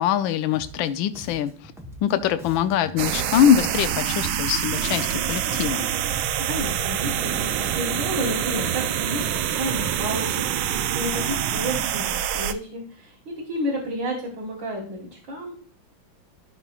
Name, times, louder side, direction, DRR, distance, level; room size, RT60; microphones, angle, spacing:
voice 1, 0.0-1.5 2.0-5.9, left 9 dB, 80° left, 10 dB, 1.4 m, -23 dB
Bass guitar, 0.5-0.9 1.1-5.8 6.1-10.4, equal, 5° right, 0.4 m, -43 dB
sound 1, 3.0-12.5, right 10 dB, 85° right, 1.4 m, -26 dB
voice 2, 6.5-15.5, equal, 65° right, -4 dB, 2.4 m, -31 dB
13.0 x 5.5 x 2.4 m, 0.42 s
omnidirectional pair, 2.2 m